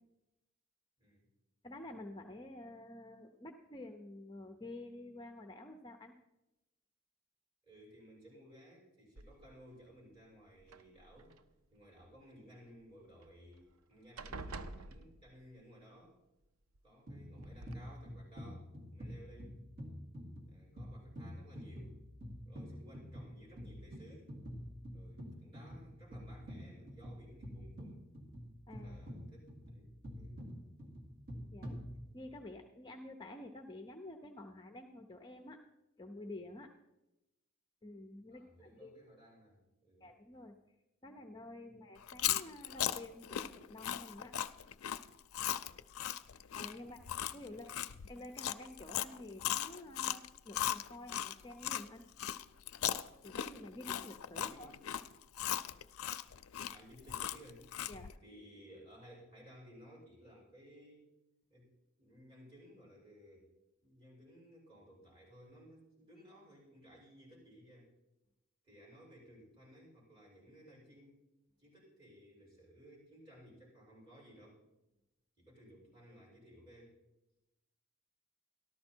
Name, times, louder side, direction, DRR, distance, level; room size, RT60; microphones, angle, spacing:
voice 1, 1.6-6.1 28.7-29.0 31.5-31.8 32.1-35.6 36.0-36.7 37.8-38.9 40.0-40.6 41.0-44.3 46.5-47.0 47.3-47.7 48.1-52.0 53.2-54.7 57.9-58.1, left 1 dB, 20° left, 4 dB, 0.5 m, -50 dB
voice 2, 7.7-11.3 11.7-16.1 16.8-19.6 20.5-22.0 22.4-24.3 24.9-28.0 28.7-30.5 38.3-40.1 41.7-41.8 46.8-47.1 47.5-47.6 54.4-55.0 56.7-57.6 58.2-61.1 61.5-61.7 62.0-63.5 63.8-67.9 68.6-71.2 71.6-74.6 75.4-76.9, equal, 20° right, -6 dB, 6.0 m, -58 dB
sound 1, 9.2-9.7 10.6-11.4 13.2-13.3 13.6-13.8 14.2-15.6 16.8-16.9 17.4-17.8, right 3 dB, 80° right, 0.6 m, -48 dB
sound 2, 17.1-32.4, equal, 45° right, 2.1 m, -48 dB
Chewing mastication, 42.0-51.8 52.2-58.1, left 11 dB, 80° left, 0.4 m, -38 dB
13.5 x 12.5 x 4.4 m, 0.97 s
head